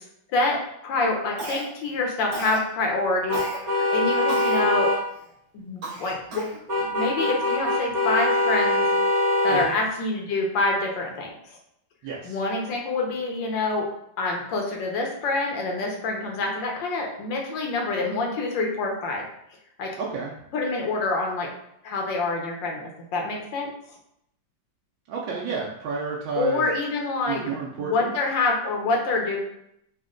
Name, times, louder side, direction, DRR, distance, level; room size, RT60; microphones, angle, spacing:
voice 1, 0.3-4.9 5.5-6.5 6.8-8.9 9.4-11.6 12.2-13.9 14.2-19.2 19.8-20.0 20.5-21.5 21.8-23.7 26.3-27.4 27.8-29.4, left 3 dB, 75° left, 0 dB, 1.5 m, -26 dB
Cough, 1.4-1.9 2.3-2.7 3.3-3.6 4.3-4.6 5.2-5.3 5.8-6.6, right 2 dB, 60° right, 1.2 m, -34 dB
sound 1, 3.3-5.0 6.7-9.7, left 1 dB, 30° right, 1.0 m, -23 dB
voice 2, 12.0-12.4 20.0-20.3 25.1-26.6 27.3-28.1, right 5 dB, 85° right, -3 dB, 1.4 m, -31 dB
4.2 x 2.2 x 3.7 m, 0.76 s
omnidirectional pair, 2.1 m